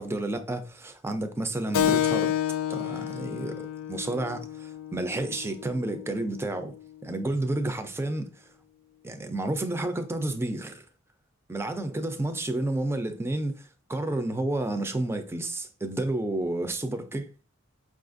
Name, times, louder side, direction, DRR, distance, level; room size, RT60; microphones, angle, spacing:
voice 1, 0.0-2.4 2.7-6.7 7.0-8.3 9.0-10.8 11.5-13.6 13.9-17.4, right 2 dB, 10° right, 0.4 m, -30 dB
Keyboard (musical), 1.7-6.8, left 10 dB, 85° left, 0.3 m, -30 dB
5.3 x 2.4 x 2.5 m
head